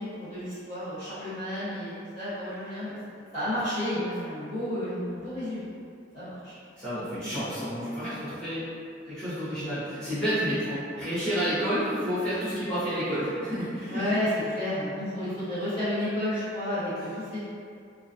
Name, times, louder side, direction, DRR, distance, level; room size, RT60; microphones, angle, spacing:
voice 1, 0.0-5.7 6.1-6.5 10.9-11.0 13.9-17.4, left 1 dB, 30° left, -14 dB, 1.3 m, -31 dB
voice 2, 6.8-8.6 9.0-14.0, equal, 5° left, -18 dB, 0.7 m, -30 dB
2.4 x 2.2 x 2.5 m, 2.3 s
head